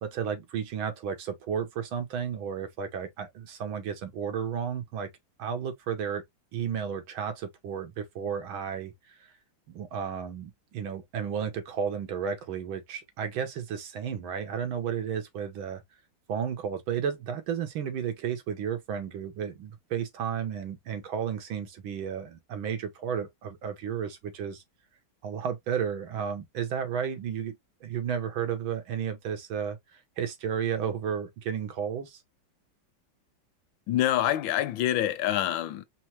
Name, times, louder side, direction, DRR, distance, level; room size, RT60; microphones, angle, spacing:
voice 1, 0.0-5.1 5.4-6.2 6.5-8.9 9.7-15.8 16.3-24.6 25.2-27.6 27.8-32.2, right 7 dB, 85° right, 1.8 m, -33 dB
voice 2, 33.9-35.8, left 12 dB, 75° left, 1.3 m, -26 dB
4.4 x 2.1 x 4.5 m
omnidirectional pair, 2.2 m